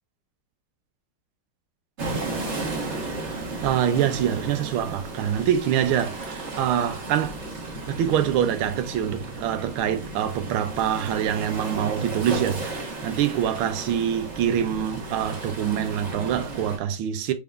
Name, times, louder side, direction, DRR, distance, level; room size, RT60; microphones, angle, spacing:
sound 1, 2.0-16.8, right 2 dB, 40° right, 1.2 m, -34 dB
voice 1, 3.2-7.4 7.9-17.3, right 9 dB, 85° right, 1.5 m, -25 dB
4.5 x 3.5 x 2.4 m
omnidirectional pair, 2.3 m